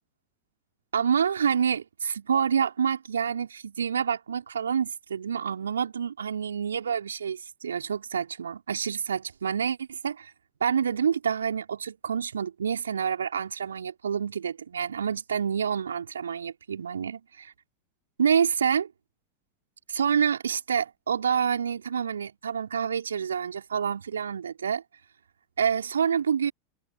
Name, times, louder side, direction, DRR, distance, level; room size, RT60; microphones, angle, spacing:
voice 1, 0.9-10.3 10.6-17.5 18.2-18.9 19.9-24.8 25.6-26.5, right 7 dB, 75° right, 4.9 m, -27 dB
figure-of-eight pair, 85°, 0 cm